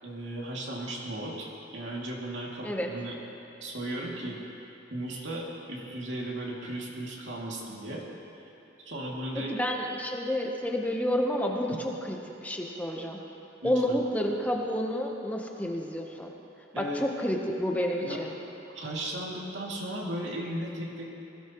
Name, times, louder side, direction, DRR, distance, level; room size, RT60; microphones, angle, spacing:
voice 1, 0.0-3.2 3.6-4.4 4.9-8.0 8.8-9.6 11.7-11.8 13.6-14.0 16.7-17.0 18.0-18.2 18.7-21.1, right 1 dB, 80° right, -3 dB, 2.5 m, -36 dB
voice 2, 9.5-12.2 12.4-13.2 13.6-16.3 16.7-18.3, equal, 10° left, 1 dB, 1.0 m, -29 dB
20.5 x 16.5 x 3.1 m, 2.9 s
head